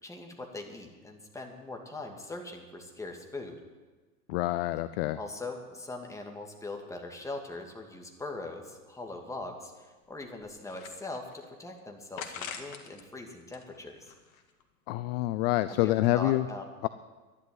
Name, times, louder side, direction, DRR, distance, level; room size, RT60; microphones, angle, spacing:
voice 1, 0.0-3.5 5.1-14.1 15.7-16.7, left 2 dB, 5° left, 1 dB, 2.4 m, -41 dB
voice 2, 4.3-5.2 14.9-16.4 16.8-16.9, left 17 dB, 40° left, 14 dB, 0.5 m, -27 dB
sound 1, 10.1-11.5 12.2-13.0 13.4-14.6, left 7 dB, 60° left, 2.1 m, -44 dB
12.0 x 11.0 x 9.6 m, 1.3 s
hypercardioid pair, 100°, 46 cm